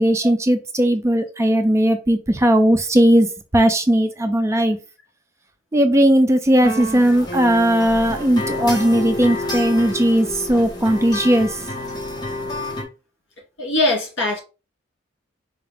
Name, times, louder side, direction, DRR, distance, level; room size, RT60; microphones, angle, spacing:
voice 1, 0.0-3.3 3.5-4.8 5.7-11.6, right 1 dB, 15° right, 0.4 m, -17 dB
sound 1, 6.6-12.8, left 1 dB, 20° left, 1.1 m, -28 dB
voice 2, 13.6-14.4, left 2 dB, 70° left, 2.1 m, -21 dB
4.5 x 2.4 x 3.4 m
head